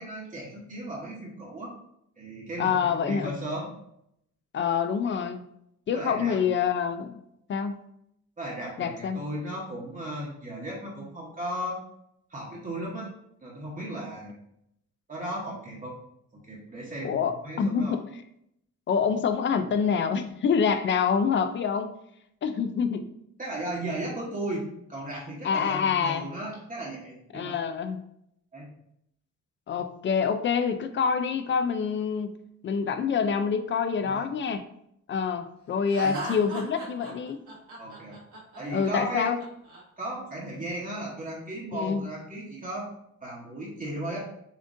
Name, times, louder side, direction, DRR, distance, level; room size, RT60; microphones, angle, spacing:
voice 1, 0.0-1.7 2.2-2.7 3.0-3.7 5.9-6.4 8.4-11.8 12.3-13.1 13.4-14.4 15.1-16.0 16.4-18.0 23.4-27.6 28.5-28.7 34.0-34.2 36.0-36.2 37.8-38.2 38.6-39.4 40.0-44.2, right 1 dB, 25° right, -4 dB, 1.0 m, -36 dB
voice 2, 2.6-3.3 4.5-5.4 5.9-7.2 7.5-7.7 8.8-9.2 17.0-18.0 18.9-21.9 22.4-23.0 25.4-26.3 27.3-28.0 29.7-32.4 32.6-34.6 35.1-37.4 38.7-39.4 41.7-42.0, left 6 dB, 40° left, 9 dB, 0.4 m, -26 dB
Laughter, 35.9-39.8, right 2 dB, 80° right, 1.6 m, -39 dB
7.1 x 2.5 x 2.6 m, 0.75 s
cardioid pair, 125°, 30 cm